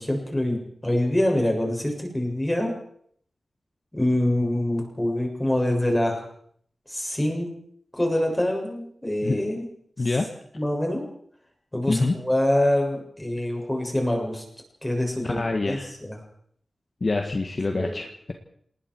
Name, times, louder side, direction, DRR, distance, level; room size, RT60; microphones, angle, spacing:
voice 1, 0.0-2.7 3.9-6.2 6.9-7.5 7.9-9.7 10.5-11.0 11.7-14.4 14.8-16.2 17.7-18.0, left 1 dB, 10° left, 1 dB, 6.7 m, -25 dB
voice 2, 10.0-10.3 11.9-12.1 15.3-15.9 17.0-18.3, left 3 dB, 40° left, 4 dB, 1.8 m, -26 dB
28.0 x 20.0 x 4.7 m, 0.64 s
wide cardioid pair, 130°, 0 cm